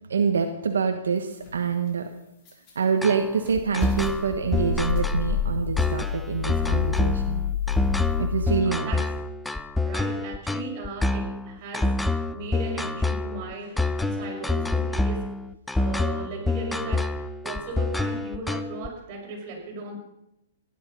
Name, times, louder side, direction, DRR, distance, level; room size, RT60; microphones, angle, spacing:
voice 1, 0.1-2.1 2.7-7.4 8.2-8.9, right 6 dB, 90° right, 5 dB, 1.4 m, -26 dB
sound 1, 1.4-1.6 2.5-2.7 3.2-8.6, left 7 dB, 35° left, 4.6 m, -28 dB
sound 2, 3.0-18.9, left 2 dB, 5° left, 0.6 m, -27 dB
voice 2, 8.6-9.0 9.8-15.2 15.8-19.9, right 3 dB, 40° right, -1 dB, 6.0 m, -37 dB
16.5 x 11.0 x 5.5 m, 0.87 s
hypercardioid pair, 140°, 0 cm